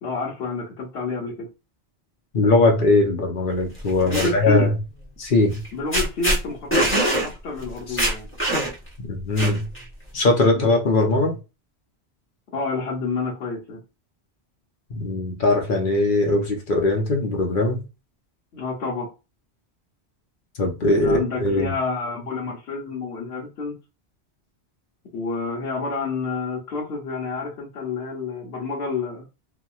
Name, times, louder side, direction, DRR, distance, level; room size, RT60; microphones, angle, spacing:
voice 1, 0.0-1.5 4.0-4.7 5.7-8.3 10.5-10.7 12.5-13.8 18.5-19.1 20.9-23.7 25.1-29.2, left 4 dB, 75° left, 1.1 m, -29 dB
voice 2, 2.3-4.7 5.2-5.6 7.9-8.0 9.0-9.7 10.1-11.4 14.9-17.8 20.6-21.7, left 2 dB, 55° left, 0.8 m, -20 dB
sound 1, 3.8-4.3 5.5-5.7 5.9-6.4 6.7-7.3 7.6-7.7 8.0-8.9 9.4-9.8, right 1 dB, 10° left, 0.9 m, -22 dB
2.9 x 2.3 x 2.3 m
omnidirectional pair, 1.1 m